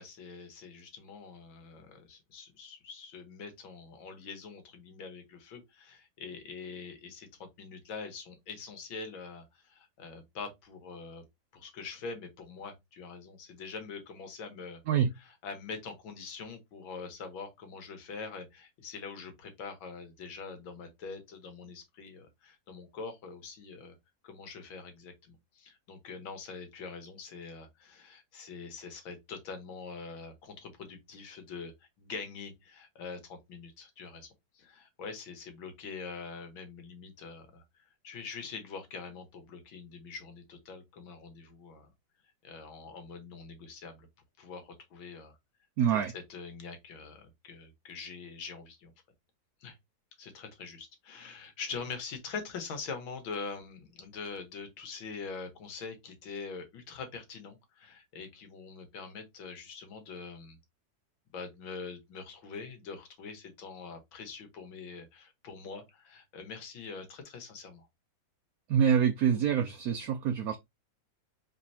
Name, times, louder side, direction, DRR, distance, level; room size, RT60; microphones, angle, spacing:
voice 1, 0.0-11.2 11.5-14.8 15.2-24.0 24.2-41.9 42.4-44.1 44.4-45.4 45.9-48.9 49.6-49.8 50.2-60.6 61.3-67.9, left 5 dB, 85° left, 2.0 m, -44 dB
voice 2, 45.8-46.1 68.7-70.6, right 8 dB, 75° right, 0.8 m, -26 dB
4.4 x 4.0 x 2.7 m
omnidirectional pair, 2.1 m